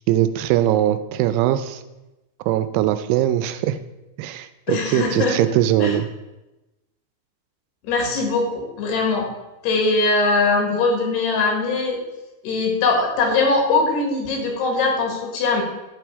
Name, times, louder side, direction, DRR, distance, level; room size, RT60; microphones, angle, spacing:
voice 1, 0.1-1.8 2.5-3.8 4.2-6.1, right 12 dB, 85° right, 11 dB, 2.6 m, -21 dB
voice 2, 4.7-5.4 5.8-5.9 7.8-9.3 9.6-12.0 12.4-15.6, left 3 dB, 80° left, 1 dB, 3.8 m, -21 dB
11.5 x 6.2 x 4.6 m, 1.0 s
omnidirectional pair, 4.7 m